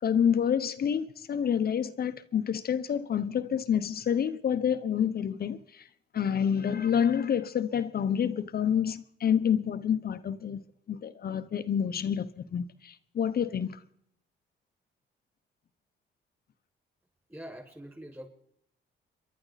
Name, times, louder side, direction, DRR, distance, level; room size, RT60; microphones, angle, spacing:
voice 1, 0.0-5.9 6.1-10.6 10.9-13.8, left 8 dB, 50° left, 1.0 m, -28 dB
voice 2, 17.3-18.3, equal, 10° right, 5.7 m, -44 dB
29.5 x 11.5 x 4.1 m
cardioid pair, 90°, 20 cm